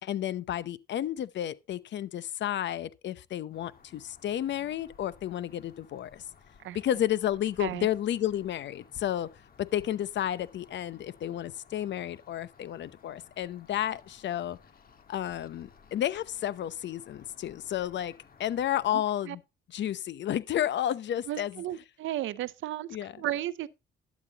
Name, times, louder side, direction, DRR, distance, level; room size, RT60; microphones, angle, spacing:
voice 1, 0.0-6.2 6.7-9.3 9.6-14.6 15.1-18.1 18.4-19.4 19.7-21.6 22.9-23.2, left 11 dB, 65° left, 0.8 m, -31 dB
sound 1, 3.5-18.9, left 6 dB, 50° left, 1.8 m, -58 dB
voice 2, 21.3-23.7, right 13 dB, 75° right, 0.7 m, -34 dB
12.0 x 8.3 x 2.9 m
cardioid pair, 90°, 20 cm